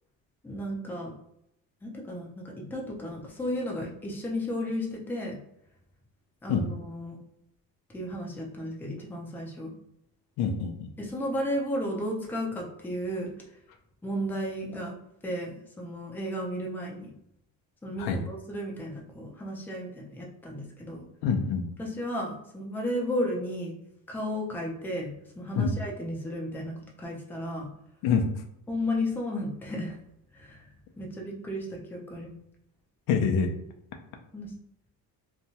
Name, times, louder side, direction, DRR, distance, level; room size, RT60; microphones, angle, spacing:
voice 1, 0.4-1.1 1.8-5.4 6.4-7.2 7.9-9.7 11.0-13.3 14.0-14.9 15.2-17.1 17.8-21.0 21.8-23.7 24.1-27.7 28.7-30.0 30.3-30.7 31.0-32.4 34.3-34.5, equal, 5° left, -1 dB, 0.4 m, -33 dB
voice 2, 10.4-10.9 18.0-18.2 21.2-21.6 25.5-25.7 28.0-28.3 33.1-33.5, left 6 dB, 75° left, 4 dB, 0.6 m, -25 dB
2.9 x 2.2 x 2.8 m, 0.79 s
cardioid pair, 130°, 38 cm